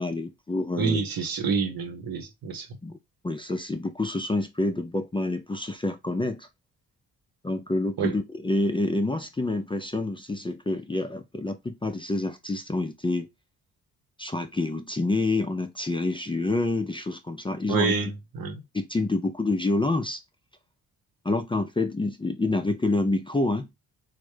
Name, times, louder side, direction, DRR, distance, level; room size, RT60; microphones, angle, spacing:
voice 1, 0.0-1.0 2.8-3.0 3.2-6.5 7.4-13.3 14.2-17.9 18.7-20.2 21.2-23.7, left 2 dB, 15° left, 0.4 m, -27 dB
voice 2, 0.8-2.7 8.0-8.1 17.7-18.6, right 4 dB, 65° right, 0.9 m, -28 dB
3.3 x 2.1 x 3.2 m
supercardioid pair, 55°, 38 cm